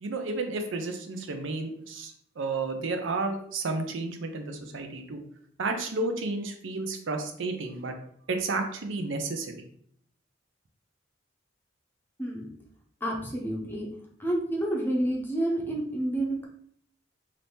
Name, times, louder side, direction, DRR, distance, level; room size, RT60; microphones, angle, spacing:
voice 1, 0.0-5.2 5.6-7.9 8.3-9.6, right 3 dB, 70° right, 5 dB, 0.5 m, -32 dB
voice 2, 13.0-13.9 14.2-16.4, right 1 dB, 10° left, -1 dB, 0.7 m, -29 dB
2.8 x 2.6 x 3.4 m, 0.64 s
head